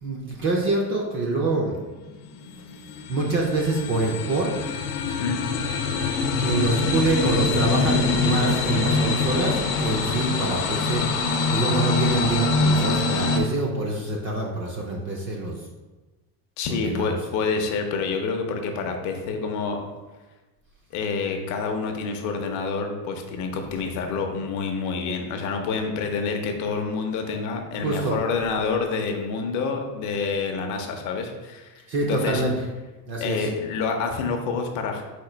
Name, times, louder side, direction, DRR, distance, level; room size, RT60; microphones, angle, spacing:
voice 1, 0.0-1.7 3.1-4.5 6.3-11.0 11.5-15.6 16.7-17.1 27.8-28.2 31.9-32.5 33.1-33.5, right 2 dB, 30° right, -1 dB, 0.4 m, -25 dB
sound 1, 1.8-13.4, left 4 dB, 90° left, 0.7 m, -24 dB
voice 2, 16.6-19.8 20.9-31.7 32.0-32.4 33.2-35.0, left 4 dB, 45° left, 4 dB, 0.5 m, -27 dB
4.3 x 2.5 x 4.8 m, 1.2 s
cardioid pair, 175°, 43 cm